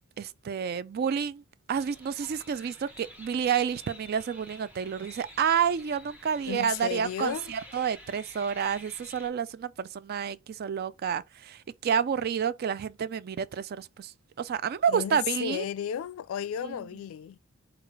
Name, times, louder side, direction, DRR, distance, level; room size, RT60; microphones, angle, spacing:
voice 1, 0.2-1.4 1.7-15.6 16.6-16.7, right 7 dB, 50° right, 0.3 m, -29 dB
sound 1, 1.7-9.3, equal, 10° right, 0.9 m, -50 dB
voice 2, 6.5-7.5 14.9-17.4, left 9 dB, 80° left, 0.3 m, -34 dB
4.7 x 2.4 x 4.6 m
head